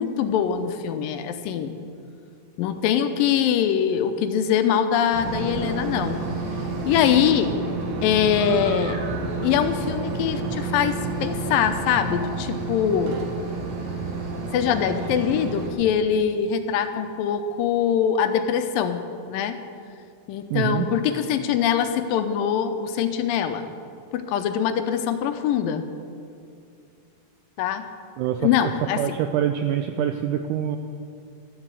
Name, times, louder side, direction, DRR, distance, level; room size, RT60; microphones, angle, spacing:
voice 1, 0.0-1.8 2.6-6.2 6.8-7.5 8.0-9.0 9.4-13.2 14.5-19.0 19.3-19.6 20.3-23.7 24.1-25.9 27.6-27.9 28.4-29.2, left 8 dB, 80° left, 8 dB, 2.3 m, -23 dB
sound 1, 5.1-15.7, right 3 dB, 65° right, 2.8 m, -30 dB
voice 2, 20.5-20.9 28.2-28.7 29.0-30.8, right 10 dB, 85° right, 7 dB, 1.8 m, -25 dB
13.0 x 7.3 x 8.2 m, 2.4 s
omnidirectional pair, 4.2 m